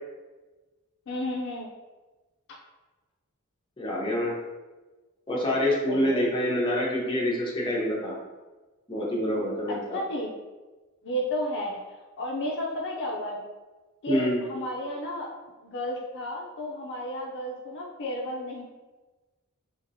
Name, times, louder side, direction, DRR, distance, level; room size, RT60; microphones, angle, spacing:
voice 1, 1.1-1.7 5.9-6.3 9.7-10.3 11.0-11.7 12.2-13.4 14.0-15.3 15.6-18.6, left 1 dB, 55° left, -2 dB, 0.4 m, -32 dB
voice 2, 3.8-4.4 5.3-8.1 8.9-10.0 14.1-14.4, left 1 dB, 20° left, -4 dB, 0.7 m, -26 dB
3.0 x 2.8 x 2.6 m, 1.2 s
head